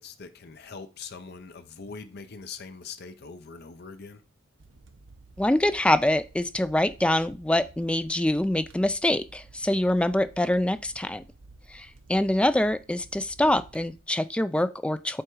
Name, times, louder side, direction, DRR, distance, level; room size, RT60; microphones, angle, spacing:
voice 1, 0.0-4.2, left 5 dB, 55° left, 0.7 m, -42 dB
sound 1, 4.6-14.0, right 3 dB, 65° right, 0.8 m, -53 dB
voice 2, 5.4-11.2 11.7-15.2, left 1 dB, 5° left, 0.3 m, -25 dB
7.8 x 3.5 x 4.6 m
head